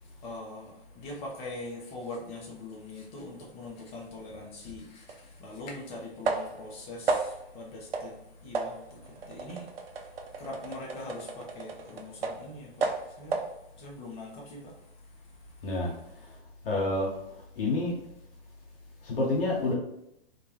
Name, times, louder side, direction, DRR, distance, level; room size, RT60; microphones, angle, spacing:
voice 1, 0.0-15.7, left 2 dB, 20° left, -1 dB, 0.5 m, -43 dB
sound 1, 5.1-5.2 6.2-6.7 7.1-7.5 7.9-8.2 8.5-12.5 12.8-13.6, right 4 dB, 75° right, 0.5 m, -33 dB
voice 2, 16.6-17.1 17.6-17.9 19.0-19.7, left 2 dB, 65° left, -3 dB, 0.7 m, -28 dB
2.2 x 2.2 x 2.9 m, 0.80 s
figure-of-eight pair, 110°, 30 cm